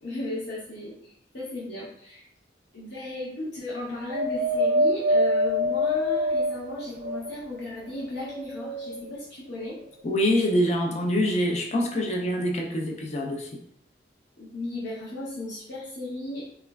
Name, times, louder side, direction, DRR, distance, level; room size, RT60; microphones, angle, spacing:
voice 1, 0.0-2.2 2.7-9.8 14.4-16.4, left 1 dB, 65° left, -7 dB, 0.7 m, -35 dB
Wind, 4.1-7.6 8.2-9.2 10.0-10.1, equal, 75° right, 0.3 m, -25 dB
voice 2, 10.0-13.5, equal, 35° left, 2 dB, 0.4 m, -25 dB
3.0 x 2.3 x 2.2 m, 0.68 s
head